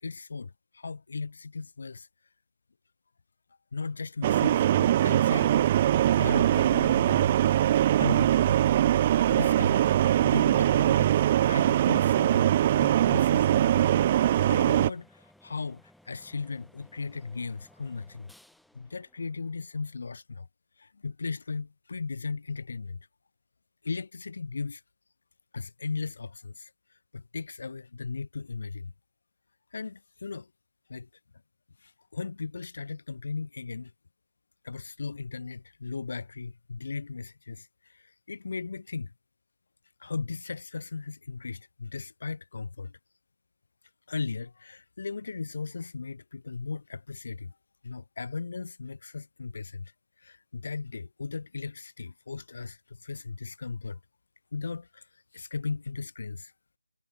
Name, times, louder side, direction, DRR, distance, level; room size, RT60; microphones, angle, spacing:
voice 1, 0.0-2.1 3.7-5.6 5.9-7.4 8.0-8.5 9.3-13.7 14.4-18.3 18.7-20.5 20.8-23.1 23.8-24.8 25.5-28.9 29.7-30.5 30.9-31.1 31.8-33.9 34.6-39.1 40.0-43.0 44.1-47.6 47.8-54.0 54.5-56.5, left 4 dB, 45° left, 2.7 m, -37 dB
sound 1, 4.2-14.9, right 12 dB, 20° right, 0.4 m, -22 dB
sound 2, 6.5-20.0, left 1 dB, ahead, 3.3 m, -60 dB
figure-of-eight pair, 160°, 0 cm